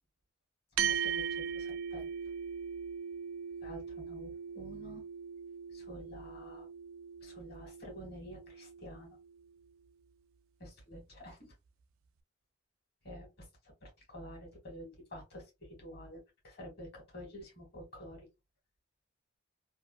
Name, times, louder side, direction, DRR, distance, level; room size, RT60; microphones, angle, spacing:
voice 1, 0.7-2.1 3.6-5.0 5.7-6.7 7.2-9.2 10.6-11.4 13.0-18.3, equal, 50° left, 1.8 m, -49 dB
sound 1, 0.8-9.4, right 7 dB, 85° right, 0.4 m, -39 dB
3.2 x 2.5 x 2.3 m
head